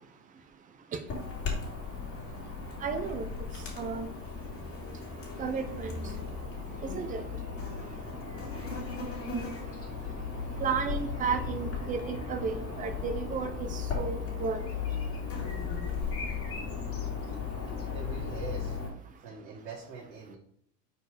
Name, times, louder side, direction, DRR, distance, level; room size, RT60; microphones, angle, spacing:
Chirp tweet / Buzz, 1.1-18.9, left 5 dB, 25° left, 2.2 m, -36 dB
voice 1, 2.8-3.3 3.8-4.1 5.4-6.0 6.8-7.2 10.6-14.6, right 6 dB, 15° right, 7 dB, 0.5 m, -33 dB
voice 2, 17.9-18.8 19.2-20.4, right 5 dB, 90° right, -5 dB, 1.9 m, -43 dB
4.6 x 4.6 x 4.9 m, 0.65 s
supercardioid pair, 130°, 49 cm